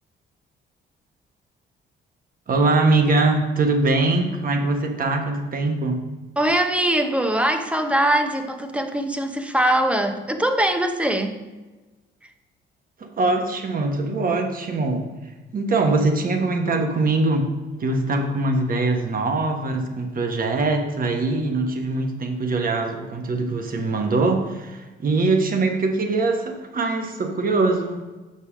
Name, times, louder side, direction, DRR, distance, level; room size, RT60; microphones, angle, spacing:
voice 1, 2.5-6.0 13.0-15.1 15.5-17.5 17.8-28.0, right 3 dB, 45° right, 4 dB, 1.2 m, -22 dB
voice 2, 6.4-11.4, right 1 dB, 5° right, 6 dB, 0.8 m, -22 dB
6.8 x 5.4 x 5.1 m, 1.2 s
cardioid pair, 90°, 20 cm